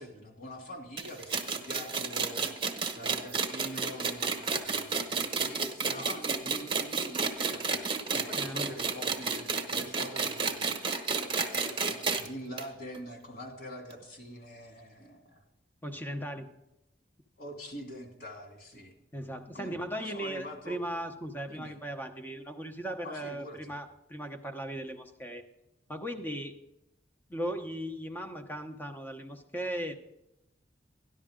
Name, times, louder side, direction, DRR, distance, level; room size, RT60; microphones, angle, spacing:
voice 1, 0.0-2.6 2.9-7.8 8.1-15.4 17.4-18.9 19.5-20.8 21.5-21.7 23.0-23.7, equal, 60° left, 1 dB, 2.9 m, -45 dB
sound 1, 1.0-12.3 12.6-12.7 12.9-13.0 13.9-14.0, right 4 dB, 25° right, 1.1 m, -31 dB
voice 2, 8.4-8.7 15.8-16.5 19.1-25.4 25.9-26.6 27.3-29.9, right 1 dB, 10° left, 6 dB, 0.8 m, -37 dB
13.5 x 11.0 x 3.7 m, 0.86 s
head